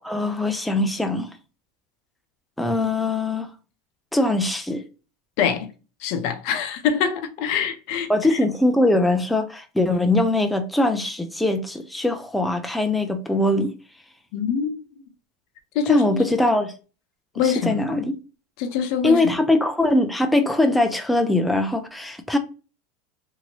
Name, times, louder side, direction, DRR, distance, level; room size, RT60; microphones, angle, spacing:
voice 1, 0.0-1.3 2.6-3.5 4.1-4.8 8.1-13.7 15.9-16.7 17.4-18.1 19.0-22.4, left 2 dB, 5° left, 0.3 m, -21 dB
voice 2, 5.4-5.7 6.0-8.4 14.3-14.7 15.7-16.3 17.4-18.0 18.6-19.3, left 7 dB, 55° left, 0.6 m, -24 dB
3.0 x 2.7 x 2.9 m
supercardioid pair, 150°, 0 cm